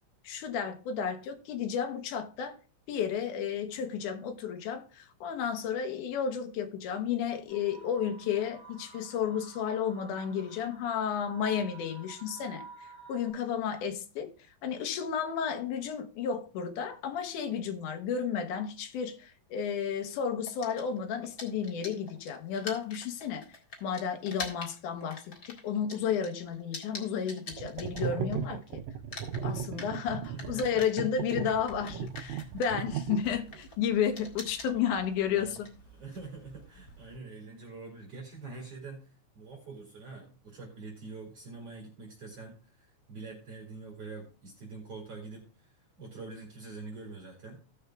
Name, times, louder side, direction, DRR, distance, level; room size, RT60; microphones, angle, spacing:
voice 1, 0.2-2.6 2.9-14.3 14.6-23.4 23.8-28.8 29.4-35.7, left 7 dB, 75° left, 2.5 m, -32 dB
sound 1, 7.5-13.3, right 5 dB, ahead, 5.8 m, -51 dB
sound 2, 20.5-28.6 28.9-37.2, left 3 dB, 30° left, 2.0 m, -46 dB
sound 3, 27.5-33.6, right 8 dB, 75° right, 1.8 m, -36 dB
voice 2, 30.3-30.8 31.3-31.6 33.3-33.4 34.7-34.8 35.3-35.6 35.9-47.6, right 3 dB, 50° right, 3.1 m, -45 dB
17.0 x 6.7 x 2.3 m
omnidirectional pair, 3.6 m